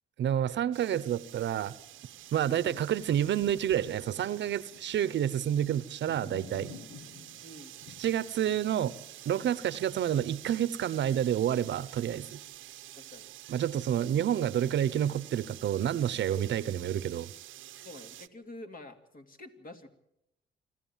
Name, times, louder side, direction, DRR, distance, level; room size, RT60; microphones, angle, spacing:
voice 1, 0.2-1.7 2.3-6.7 8.0-8.9 9.3-12.4 13.5-17.3, right 10 dB, 65° right, 0.9 m, -29 dB
sound 1, 0.7-18.3, right 14 dB, 85° right, 0.9 m, -49 dB
sound 2, 1.9-10.2 10.7-10.8, left 5 dB, 90° left, 1.5 m, -52 dB
voice 2, 2.5-2.8 7.4-7.8 12.9-13.3 16.3-16.5 17.8-19.9, left 1 dB, 45° left, 2.9 m, -48 dB
26.0 x 14.0 x 7.4 m
cardioid pair, 90°, 20 cm